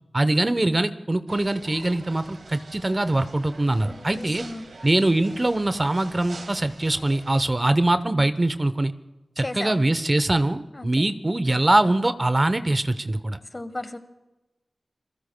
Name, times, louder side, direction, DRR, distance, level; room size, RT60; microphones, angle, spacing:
voice 1, 0.1-4.4 4.8-8.9 9.4-13.4, right 2 dB, 35° right, 12 dB, 0.8 m, -23 dB
sound 1, 1.3-7.5, right 3 dB, 85° right, 2.1 m, -45 dB
voice 2, 3.9-4.6 9.4-9.7 10.7-10.9 13.5-14.0, left 2 dB, 35° left, 10 dB, 1.2 m, -35 dB
28.5 x 21.5 x 2.2 m, 1.1 s
cardioid pair, 40°, 0 cm